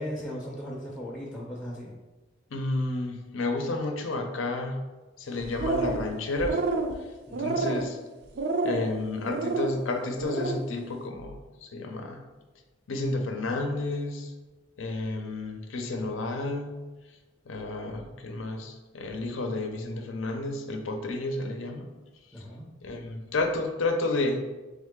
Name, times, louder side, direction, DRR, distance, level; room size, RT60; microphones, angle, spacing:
voice 1, 0.0-1.9 7.3-7.6 22.3-22.7, equal, 5° left, -5 dB, 0.5 m, -37 dB
voice 2, 2.5-4.8 5.2-6.6 7.4-8.0 8.6-12.2 12.9-14.3 14.8-16.7 17.5-21.9 22.8-24.4, left 2 dB, 85° left, 4 dB, 0.6 m, -31 dB
sound 1, 5.4-6.1 6.4-6.9 7.3-7.9 8.4-8.9 9.3-9.7 10.1-10.6, right 3 dB, 55° right, 0.4 m, -29 dB
3.6 x 3.2 x 3.6 m, 1.2 s
head